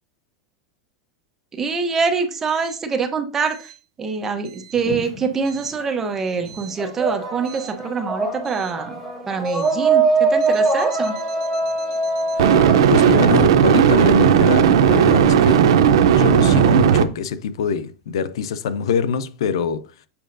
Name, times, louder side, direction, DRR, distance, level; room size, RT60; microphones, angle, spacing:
voice 1, 1.5-3.7 4.0-9.0 9.3-11.2, right 5 dB, 15° right, 0.7 m, -25 dB
sound 1, 4.7-6.0 6.3-14.1, right 3 dB, 10° left, 2.1 m, -23 dB
sound 2, 7.5-7.7 12.4-17.0, right 8 dB, 90° right, 0.5 m, -15 dB
voice 2, 12.9-15.7 16.2-19.9, left 6 dB, 90° left, 0.5 m, -24 dB
6.9 x 5.3 x 2.6 m
supercardioid pair, 170°, 3 cm